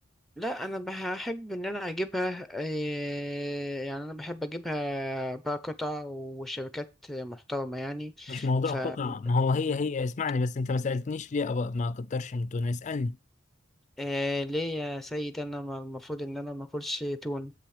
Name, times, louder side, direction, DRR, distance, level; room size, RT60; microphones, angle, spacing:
voice 1, 0.4-9.1 9.7-9.8 14.0-17.5, equal, ahead, 0.7 m, -34 dB
voice 2, 8.3-13.2, left 3 dB, 40° left, 0.4 m, -29 dB
7.8 x 6.0 x 4.9 m
head